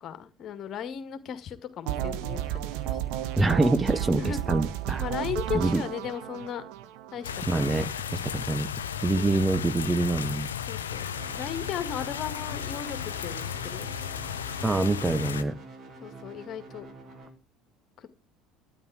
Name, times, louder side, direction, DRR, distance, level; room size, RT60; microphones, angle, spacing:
voice 1, 0.0-3.0 4.2-4.4 5.0-6.6 7.1-7.3 7.6-7.7 9.2-9.4 10.7-11.1 11.4-13.9 16.0-16.9 18.0-18.1, left 8 dB, 45° left, 10 dB, 1.9 m, -36 dB
sound 1, 1.9-7.8, right 12 dB, 60° right, 1.2 m, -32 dB
voice 2, 3.4-5.0 5.5-5.8 7.5-8.7 9.0-10.5 14.6-15.5, right 2 dB, 15° right, 13 dB, 0.8 m, -25 dB
sound 2, 7.2-15.4, left 8 dB, 75° left, 0.8 m, -34 dB
sound 3, 11.1-17.3, right 3 dB, 40° right, 3.8 m, -46 dB
13.0 x 9.8 x 4.9 m, 0.29 s
figure-of-eight pair, 65°, 0 cm